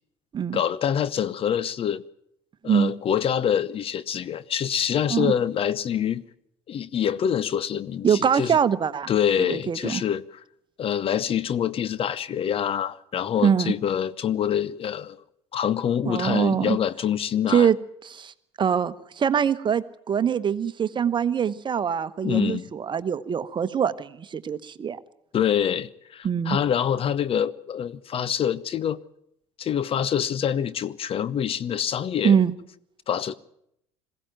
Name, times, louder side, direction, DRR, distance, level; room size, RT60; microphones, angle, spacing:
voice 1, 0.5-2.0 2.6-6.2 6.7-8.6 9.1-10.4 10.8-15.2 15.5-17.7 22.2-22.7 25.3-29.0 29.6-32.4 33.1-33.3, left 9 dB, 40° left, 0.8 m, -26 dB
voice 2, 8.0-9.1 9.5-10.0 13.4-13.7 16.0-16.8 17.5-17.8 18.0-18.3 18.6-25.0 26.2-26.6 32.2-32.5, right 7 dB, 35° right, 1.2 m, -23 dB
21.5 x 16.0 x 9.0 m
hypercardioid pair, 65°, 14 cm